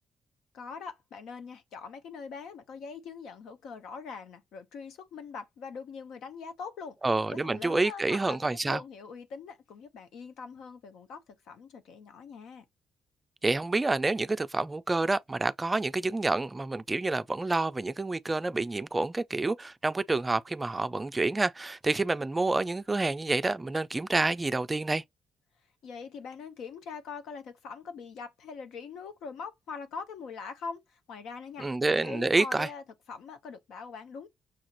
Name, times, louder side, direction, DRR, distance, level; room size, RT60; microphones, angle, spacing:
voice 1, 0.5-7.0 7.3-12.7 25.8-34.3, left 5 dB, 80° left, 0.9 m, -42 dB
voice 2, 7.0-8.8 13.4-25.0 31.6-32.7, right 3 dB, 20° right, 0.3 m, -28 dB
6.2 x 2.5 x 3.0 m
cardioid pair, 90°, 0 cm